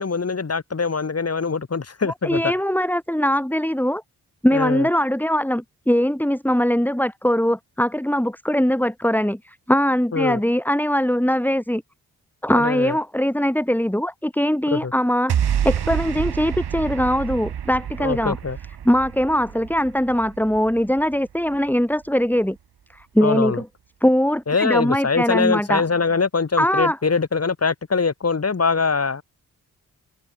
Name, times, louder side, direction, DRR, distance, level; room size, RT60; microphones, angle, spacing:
voice 1, 0.0-2.5 4.5-4.9 10.1-10.4 12.5-13.0 14.7-14.9 18.0-18.6 23.2-23.6 24.5-29.2, left 4 dB, 40° left, 2.3 m, -23 dB
voice 2, 2.2-4.0 4.4-11.8 12.4-18.4 18.9-22.6 22.9-23.7 24.0-25.8 26.6-27.0, equal, 5° left, 5.7 m, -21 dB
sound 1, 15.3-21.7, right 9 dB, 80° right, 5.4 m, -28 dB
open air
supercardioid pair, 45°, 39 cm